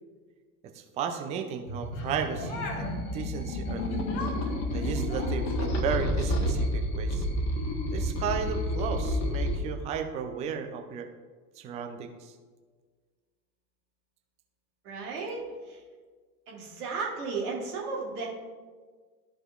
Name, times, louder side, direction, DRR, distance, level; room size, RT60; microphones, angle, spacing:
voice 1, 0.7-4.0 4.7-7.2 7.9-11.1 11.6-12.3, right 7 dB, 15° right, 6 dB, 0.3 m, -34 dB
sound 1, 1.7-9.6, left 1 dB, 35° left, 1.2 m, -30 dB
sound 2, 1.9-3.0 3.9-5.8 6.3-6.5, left 2 dB, 55° left, 1.6 m, -40 dB
voice 2, 14.8-15.8 16.5-18.3, right 4 dB, 65° right, -3 dB, 2.1 m, -34 dB
12.5 x 5.0 x 2.4 m, 1.5 s
figure-of-eight pair, 85°, 50 cm